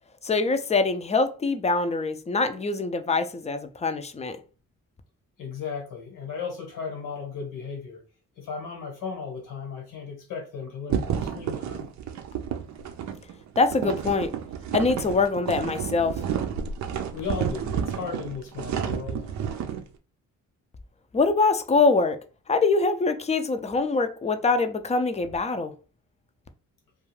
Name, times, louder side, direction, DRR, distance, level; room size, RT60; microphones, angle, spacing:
voice 1, 0.2-4.4 13.6-14.3 14.7-16.2 21.1-22.2 22.5-25.7, left 3 dB, 20° left, 0.4 m, -24 dB
voice 2, 5.4-8.0 8.4-11.9 17.1-19.3, left 5 dB, 85° left, 1.2 m, -35 dB
sound 1, 10.9-19.8, right 8 dB, 60° right, 0.5 m, -31 dB
2.4 x 2.3 x 3.2 m
supercardioid pair, 65°, 31 cm